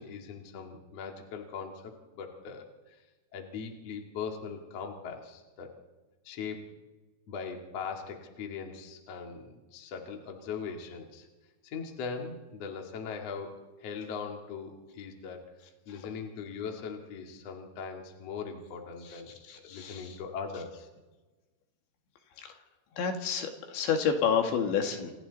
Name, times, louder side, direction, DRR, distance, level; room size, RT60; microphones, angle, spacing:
voice 1, 0.0-2.7 3.3-5.7 6.2-6.7 7.3-11.3 11.6-15.5 15.9-20.9, left 5 dB, 45° left, 2 dB, 2.6 m, -40 dB
voice 2, 19.5-20.2 22.4-22.5 23.0-25.1, left 7 dB, 75° left, 4 dB, 4.2 m, -29 dB
28.0 x 27.5 x 4.1 m, 1.2 s
omnidirectional pair, 5.4 m